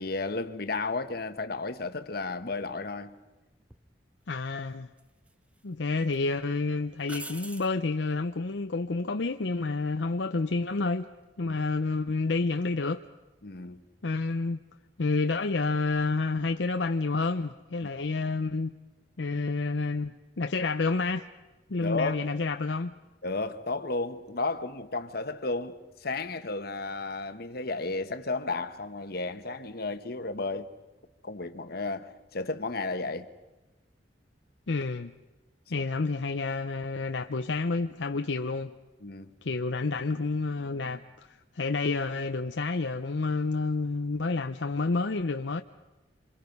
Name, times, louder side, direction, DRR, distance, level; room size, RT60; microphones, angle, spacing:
voice 1, 0.0-3.2 11.4-11.6 13.4-13.8 17.8-17.9 21.8-22.2 23.2-30.7 31.2-33.3 35.7-35.8 39.0-39.3, left 3 dB, 55° left, 1.3 m, -33 dB
sound 1, 3.7-3.9 5.0-5.6 6.0-6.2 7.0-7.8 10.9-11.2, right 2 dB, 5° right, 0.8 m, -43 dB
voice 2, 4.3-4.9 5.6-11.1 11.4-13.0 14.0-14.6 15.0-18.7 19.2-21.3 21.7-22.9 34.7-35.1 35.7-38.7 39.4-45.6, left 3 dB, 75° left, 0.7 m, -29 dB
27.5 x 27.0 x 5.4 m
head